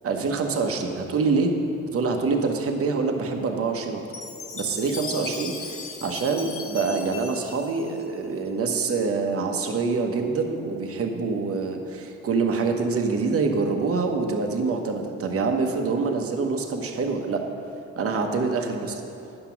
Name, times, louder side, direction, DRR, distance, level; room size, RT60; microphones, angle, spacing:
voice 1, 0.0-1.5 1.9-4.0 4.5-17.4 18.0-19.0, right 4 dB, 50° right, 3 dB, 1.1 m, -25 dB
Chime, 4.1-8.5, left 4 dB, 45° left, 0.9 m, -38 dB
9.7 x 6.0 x 5.8 m, 2.8 s
cardioid pair, 90°, 30 cm